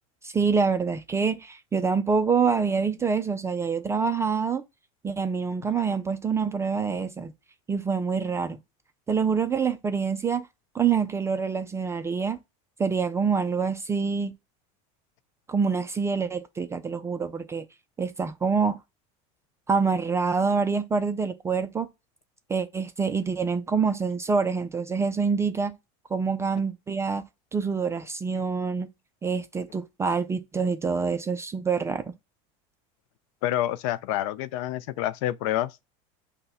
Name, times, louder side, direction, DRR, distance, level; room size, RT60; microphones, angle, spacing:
voice 1, 0.2-4.6 5.0-7.3 7.7-8.6 9.1-10.5 10.7-12.4 12.8-14.3 15.5-17.6 18.0-18.8 19.7-21.9 22.5-25.7 26.1-27.2 27.5-28.9 29.2-32.1, right 5 dB, 15° right, 0.4 m, -26 dB
voice 2, 33.4-35.8, left 13 dB, 70° left, 0.4 m, -28 dB
5.5 x 2.2 x 4.0 m
supercardioid pair, 130°, 17 cm